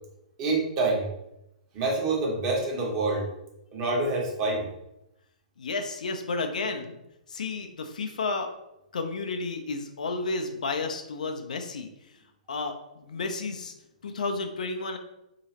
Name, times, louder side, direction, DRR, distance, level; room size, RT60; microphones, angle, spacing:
voice 1, 0.4-1.1 1.7-3.3 3.7-4.7, right 3 dB, 35° right, -2 dB, 1.2 m, -26 dB
voice 2, 5.6-7.0 7.3-8.5 8.9-11.9 12.5-13.7 14.0-15.0, left 3 dB, 65° left, 5 dB, 0.5 m, -32 dB
3.9 x 2.9 x 2.9 m, 0.85 s
figure-of-eight pair, 115°, 4 cm